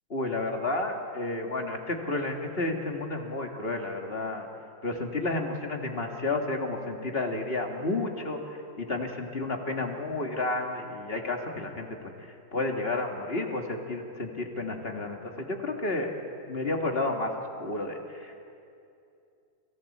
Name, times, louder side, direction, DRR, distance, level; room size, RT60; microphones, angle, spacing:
voice 1, 0.1-4.5 4.8-11.9 12.2-16.1 16.5-17.3 17.6-18.4, left 2 dB, 30° left, 2 dB, 2.0 m, -31 dB
29.0 x 26.0 x 4.3 m, 2.6 s
omnidirectional pair, 2.1 m